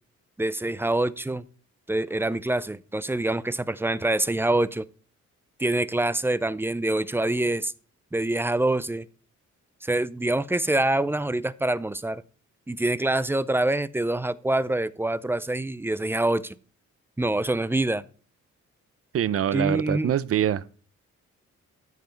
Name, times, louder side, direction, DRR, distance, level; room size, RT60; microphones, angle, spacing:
voice 1, 0.4-1.4 1.9-4.8 5.6-7.7 8.1-9.1 9.8-12.2 12.7-16.6 17.2-18.0 19.5-20.1, right 2 dB, 10° right, 0.4 m, -25 dB
voice 2, 19.1-20.6, right 10 dB, 50° right, 0.6 m, -24 dB
13.0 x 5.5 x 4.4 m
wide cardioid pair, 145°, 29 cm